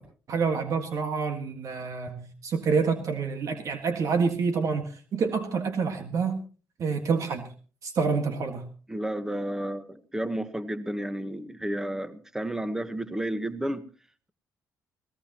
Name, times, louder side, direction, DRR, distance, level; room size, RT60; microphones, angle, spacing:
voice 1, 0.3-6.4 6.8-7.5 7.8-8.7, right 5 dB, 60° right, 1.8 m, -27 dB
voice 2, 8.9-13.8, right 1 dB, 10° right, 1.3 m, -32 dB
19.5 x 18.5 x 3.0 m
cardioid pair, 90°, 6 cm